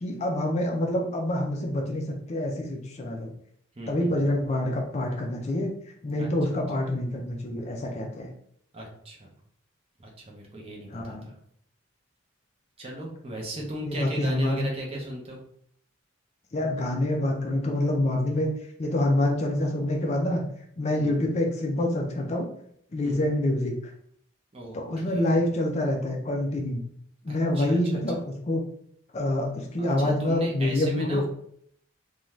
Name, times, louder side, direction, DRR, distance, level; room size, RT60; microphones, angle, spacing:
voice 1, 0.0-3.3 3.9-5.7 6.0-8.3 10.6-11.3 13.9-14.6 16.5-18.5 18.8-20.4 20.8-22.5 22.9-23.7 24.7-26.8 27.2-28.6 29.1-31.3, left 1 dB, 30° left, 1 dB, 0.4 m, -26 dB
voice 2, 3.8-4.3 6.2-6.6 8.7-9.3 10.0-11.4 12.8-15.4 21.0-21.3 23.0-23.2 24.5-24.8 25.1-25.3 27.3-28.0 29.8-31.3, right 1 dB, 30° right, -1 dB, 0.6 m, -36 dB
2.5 x 2.2 x 3.1 m, 0.67 s
head